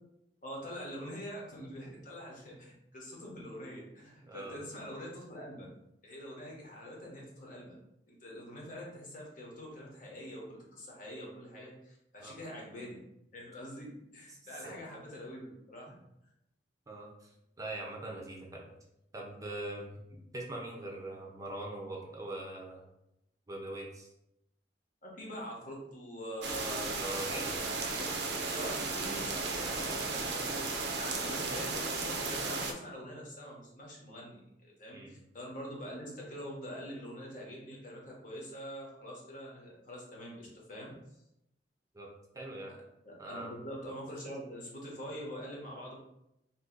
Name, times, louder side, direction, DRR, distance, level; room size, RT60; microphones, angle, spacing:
voice 1, 0.4-5.7 6.0-7.7 8.1-13.0 13.3-15.9 25.0-26.9 28.5-30.6 30.9-40.9 43.0-46.0, equal, 50° left, -2 dB, 1.0 m, -44 dB
voice 2, 4.2-4.6 12.2-12.4 14.3-14.8 15.9-16.0 16.9-17.3 17.6-18.7 19.1-22.9 23.5-24.1 27.0-27.6 34.9-35.2 41.9-42.1 42.3-42.7 43.2-43.5, right 1 dB, 20° right, -1 dB, 0.5 m, -42 dB
sound 1, 26.4-32.7, right 3 dB, 70° right, 0.5 m, -35 dB
2.8 x 2.6 x 3.8 m, 0.82 s
head